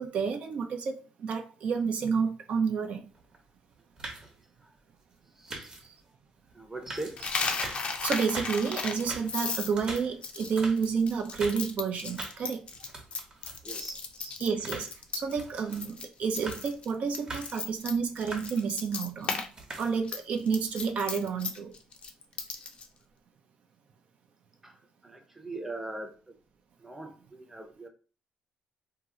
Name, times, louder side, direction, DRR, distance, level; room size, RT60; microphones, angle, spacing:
voice 1, 0.0-3.0 7.2-7.3 8.0-12.6 14.2-14.9 15.1-19.4 19.8-21.7, right 5 dB, 60° right, 0.6 m, -30 dB
sound 1, 3.1-3.4 3.7-4.4 5.5-6.0 6.5-6.6 6.8-7.9 8.2-8.7 8.9-11.7 12.0-12.5 12.7-13.7 14.1-15.9 16.2-16.8 17.1-17.6 18.0-18.7 19.3-20.2 20.6-20.9, right 2 dB, 35° right, 1.0 m, -42 dB
voice 2, 5.2-5.7 6.5-7.2 12.3-12.5 13.6-14.0 22.5-22.6 24.6-26.4 26.8-27.9, right 2 dB, 10° right, 0.7 m, -41 dB
Coin (dropping), 7.2-15.4 15.7-16.1 16.3-19.5 19.7-22.9, left 4 dB, 45° left, 0.5 m, -35 dB
2.8 x 2.0 x 3.6 m
cardioid pair, 90°, 3 cm